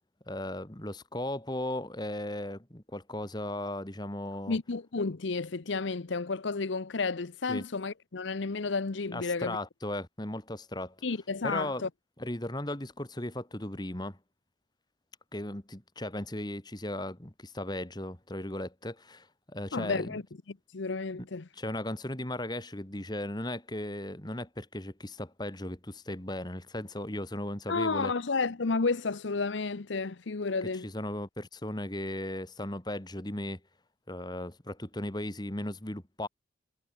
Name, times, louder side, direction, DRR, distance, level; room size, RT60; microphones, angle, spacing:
voice 1, 0.3-4.6 7.5-7.7 9.1-11.0 11.4-11.8 12.2-14.2 15.3-20.2 21.5-28.1 30.6-33.6 34.1-36.3, left 1 dB, 20° left, 2.0 m, -36 dB
voice 2, 4.5-9.6 11.0-11.9 19.7-20.2 20.7-21.5 27.7-30.9, left 4 dB, 70° left, 0.8 m, -31 dB
head